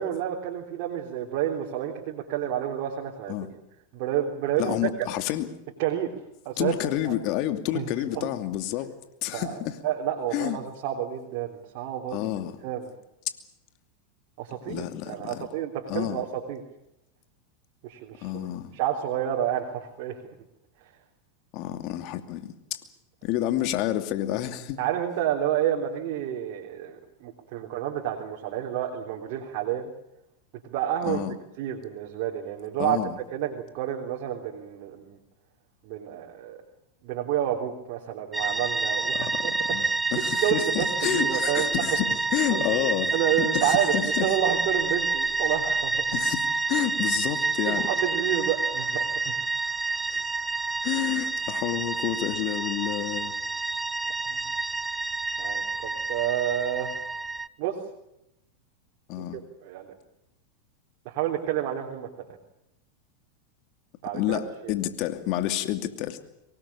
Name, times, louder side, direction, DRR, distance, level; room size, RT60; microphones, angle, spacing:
voice 1, 0.0-3.5 3.9-5.1 5.8-6.1 6.4-6.7 7.0-7.1 7.7-7.9 8.1-8.3 9.3-12.2 12.6-12.9 14.4-16.6 17.8-18.5 18.7-20.2 24.8-29.9 30.6-31.2 31.6-33.0 33.3-35.2 35.8-36.6 37.0-39.8 40.1-41.7 42.5-42.6 43.1-46.0 47.6-49.3 54.3-54.4 55.4-56.9 57.6-57.7 59.3-59.9 61.0-62.1 64.0-64.7, right 11 dB, 60° right, 3.5 m, -29 dB
voice 2, 4.6-5.5 6.6-8.9 9.2-9.8 10.3-10.6 12.1-12.6 14.7-15.5 15.9-16.2 18.2-18.7 21.5-22.8 23.2-24.8 31.0-31.3 32.8-33.2 39.1-39.4 39.7-39.8 40.1-44.4 46.1-47.9 50.1-50.2 50.8-53.3 59.1-59.4 64.1-66.2, left 13 dB, 55° left, 2.6 m, -29 dB
sound 1, 38.3-57.5, right 3 dB, 10° right, 0.8 m, -28 dB
24.0 x 19.0 x 8.6 m
hypercardioid pair, 100°, 0 cm